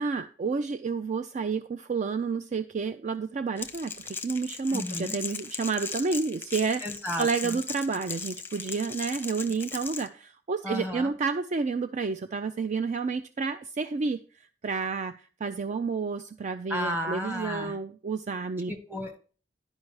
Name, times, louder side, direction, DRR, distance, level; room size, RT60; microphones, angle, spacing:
voice 1, 0.0-6.8 7.2-18.7, right 4 dB, 40° right, 11 dB, 0.4 m, -30 dB
Crackle, 3.6-10.1, left 4 dB, 10° left, 0.8 m, -38 dB
voice 2, 4.7-5.1 6.8-7.6 10.6-11.1 16.7-17.8 18.7-19.2, left 1 dB, 10° right, 4 dB, 1.6 m, -33 dB
11.0 x 5.2 x 4.8 m, 0.39 s
head